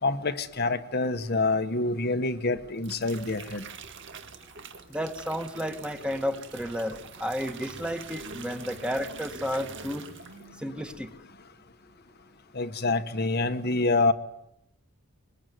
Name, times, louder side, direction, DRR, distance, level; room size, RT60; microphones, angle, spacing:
voice 1, 0.0-3.6 12.5-14.1, left 3 dB, 50° left, 9 dB, 1.3 m, -26 dB
sound 1, 2.6-10.6 10.9-11.2, right 5 dB, 55° right, 2.0 m, -45 dB
sound 2, 3.8-5.4 8.2-10.8, right 1 dB, 85° right, 5.6 m, -52 dB
voice 2, 4.9-10.1 10.6-11.1, equal, 5° right, 7 dB, 1.6 m, -32 dB
24.5 x 22.0 x 9.4 m, 0.80 s
head